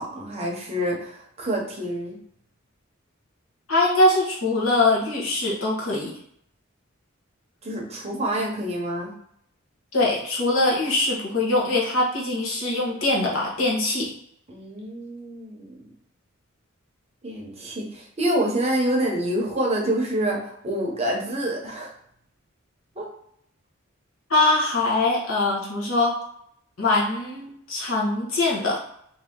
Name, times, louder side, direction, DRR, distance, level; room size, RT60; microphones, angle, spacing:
voice 1, 0.0-2.2 7.6-9.1 14.5-15.8 17.2-21.9 22.9-23.1, right 1 dB, 30° right, -1 dB, 0.8 m, -27 dB
voice 2, 3.7-6.1 9.9-14.1 24.3-26.2 26.8-28.8, left 2 dB, 80° left, -3 dB, 1.1 m, -22 dB
2.9 x 2.8 x 3.7 m, 0.71 s
head